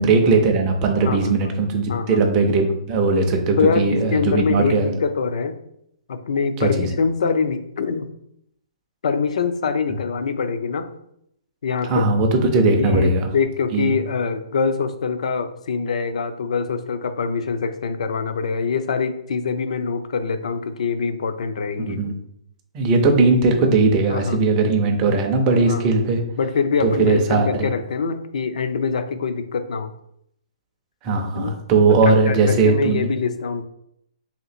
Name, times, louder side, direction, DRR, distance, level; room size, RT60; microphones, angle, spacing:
voice 1, 0.0-4.9 6.6-6.9 11.8-13.3 13.7-13.9 21.9-22.1 22.7-26.2 26.8-27.7 31.0-33.1, right 3 dB, 15° right, 3 dB, 0.4 m, -18 dB
voice 2, 3.6-5.6 6.1-8.1 9.0-10.9 11.6-12.1 12.8-22.0 24.1-24.4 25.7-25.8 26.4-29.9 31.3-31.5 32.1-33.6, left 5 dB, 65° left, 10 dB, 0.4 m, -24 dB
3.3 x 2.9 x 4.1 m, 0.75 s
hypercardioid pair, 175°, 4 cm